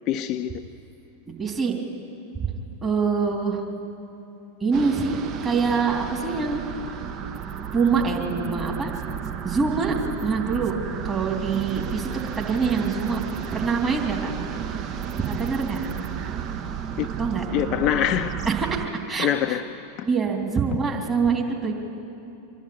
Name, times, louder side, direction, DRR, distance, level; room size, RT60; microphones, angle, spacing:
voice 1, 0.1-0.5 17.0-17.1 17.5-18.4 19.2-19.6 20.0-20.1, left 11 dB, 35° left, 0.6 m, -24 dB
voice 2, 1.3-1.7 2.3-2.5 2.8-3.6 4.6-5.2 5.4-6.6 7.7-8.9 9.4-10.7 11.0-12.1 12.4-13.2 13.5-14.3 15.2-15.9 17.2-17.4 18.4-19.6 20.1-21.7, right 5 dB, 15° right, 3.2 m, -25 dB
sound 1, 4.7-18.9, right 8 dB, 35° right, 0.9 m, -32 dB
25.0 x 11.5 x 9.2 m
figure-of-eight pair, 90°, 0 cm